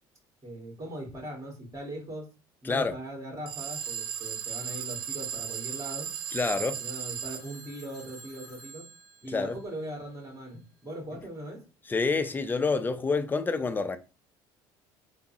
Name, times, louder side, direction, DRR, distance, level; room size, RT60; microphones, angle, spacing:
voice 1, 0.4-2.3 2.6-6.1 6.5-8.9 9.2-11.6, right 1 dB, 30° right, 1.6 m, -40 dB
sound 1, 3.5-7.4, right 9 dB, 50° right, 0.4 m, -36 dB
Telephone, 3.6-10.4, right 3 dB, ahead, 1.6 m, -49 dB
voice 2, 6.3-6.7 9.3-9.6 11.9-14.0, left 4 dB, 15° left, 0.4 m, -27 dB
3.5 x 2.0 x 2.7 m
supercardioid pair, 85°, 11 cm